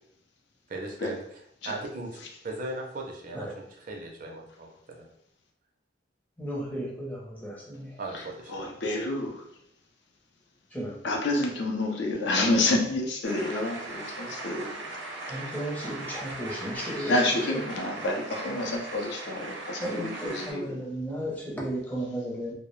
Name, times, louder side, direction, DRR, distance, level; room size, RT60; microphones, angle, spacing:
voice 1, 0.7-1.2 1.6-3.5 3.8-5.1 8.0-8.8, right 2 dB, 45° right, 0 dB, 0.4 m, -38 dB
voice 2, 6.4-8.0 10.7-11.0 12.4-12.5 15.3-17.2 17.5-17.7 19.8-22.5, equal, 10° left, -4 dB, 0.5 m, -34 dB
voice 3, 8.5-9.4 11.0-14.8 16.7-20.8, left 2 dB, 65° left, 1 dB, 0.5 m, -28 dB
sound 1, 13.2-20.5, right 2 dB, 80° right, 0.7 m, -39 dB
2.2 x 2.0 x 3.0 m, 0.72 s
head